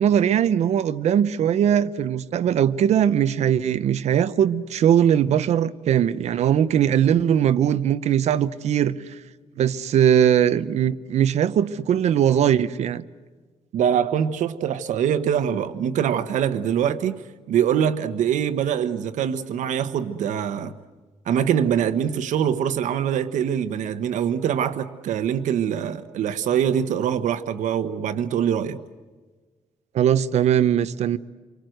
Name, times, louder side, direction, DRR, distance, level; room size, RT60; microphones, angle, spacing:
voice 1, 0.0-9.2 9.6-13.0 29.9-31.2, right 9 dB, 65° right, 0.8 m, -20 dB
voice 2, 13.7-17.2 17.5-20.7 21.3-28.8, right 9 dB, 85° right, 1.3 m, -23 dB
28.5 x 24.5 x 7.9 m
cardioid pair, 165°, 12 cm